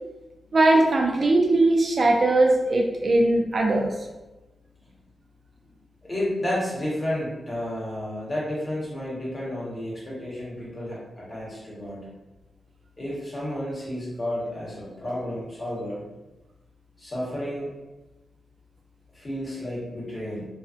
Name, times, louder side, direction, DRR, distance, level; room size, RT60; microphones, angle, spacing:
voice 1, 0.5-3.9, right 2 dB, 50° right, 1 dB, 0.3 m, -20 dB
voice 2, 6.0-12.0 13.0-16.0 17.0-17.7 19.1-20.5, left 1 dB, 30° left, -7 dB, 1.1 m, -31 dB
2.5 x 2.3 x 2.4 m, 1.1 s
wide cardioid pair, 105°, 0 cm